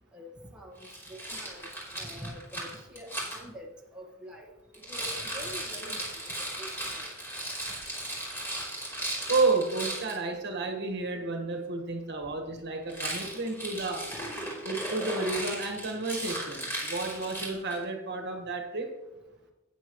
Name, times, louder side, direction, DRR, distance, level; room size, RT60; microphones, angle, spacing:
voice 1, 0.1-1.7 1.9-4.5 4.9-7.1, equal, 5° right, -2 dB, 1.4 m, -46 dB
Rattle, 0.8-3.4 4.7-10.2 12.9-17.8, right 1 dB, 10° left, 3.3 m, -36 dB
voice 2, 9.3-14.0 14.6-18.9, right 3 dB, 55° right, 3 dB, 1.5 m, -31 dB
12.5 x 9.3 x 3.1 m, 1.0 s
head